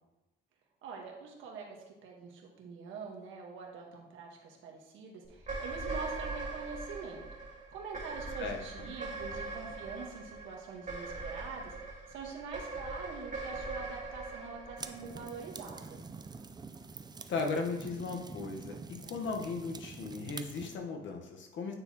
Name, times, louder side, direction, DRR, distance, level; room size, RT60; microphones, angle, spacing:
voice 1, 0.8-16.0, right 4 dB, 85° right, 0 dB, 1.2 m, -45 dB
sound 1, 5.4-15.9, right 3 dB, 40° right, 1.6 m, -41 dB
sound 2, 14.8-20.8, right 4 dB, 20° right, 0.4 m, -46 dB
voice 2, 17.3-21.7, left 4 dB, 70° left, 3 dB, 1.0 m, -36 dB
9.2 x 4.1 x 2.8 m, 0.98 s
cardioid pair, 90°, 20 cm